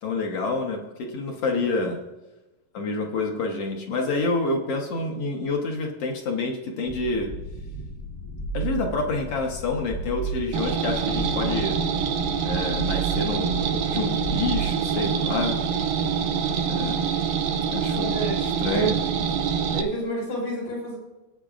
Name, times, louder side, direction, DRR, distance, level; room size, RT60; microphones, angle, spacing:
voice 1, 0.0-2.0 2.7-7.3 8.5-11.8 12.4-15.6 16.7-17.0 17.7-18.2 18.4-18.9, left 3 dB, 55° left, 1 dB, 1.8 m, -28 dB
sound 1, 6.8-14.6, right 4 dB, 30° left, 1.4 m, -34 dB
sound 2, 10.5-19.8, right 7 dB, 85° right, 2.5 m, -26 dB
voice 2, 17.9-19.5 19.7-21.0, right 2 dB, 80° left, -4 dB, 5.4 m, -30 dB
18.5 x 8.9 x 2.5 m, 1.1 s
omnidirectional pair, 4.1 m